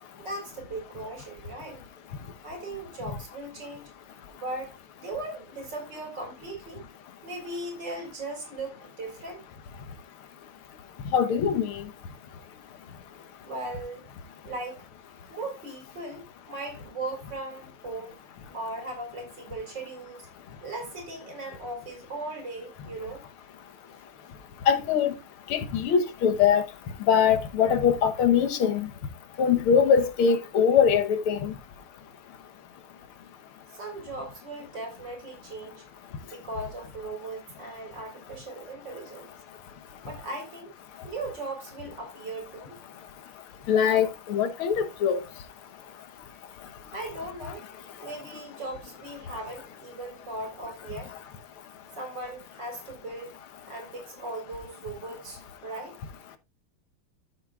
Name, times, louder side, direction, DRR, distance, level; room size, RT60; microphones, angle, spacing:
voice 1, 0.2-1.8 2.4-3.9 4.3-6.8 7.2-9.4 13.4-14.1 14.4-14.8 15.3-18.2 18.5-20.3 20.6-23.3 33.7-35.9 36.3-39.3 40.0-40.7 41.0-42.8 46.9-47.7 48.0-51.1 52.0-53.4 53.6-56.0, right 2 dB, 55° right, 4.7 m, -38 dB
voice 2, 11.1-11.8 24.7-25.2 25.5-26.6 27.1-28.9 29.4-31.5 43.7-45.2, left 7 dB, 80° left, 1.9 m, -22 dB
13.5 x 7.5 x 2.4 m
omnidirectional pair, 2.4 m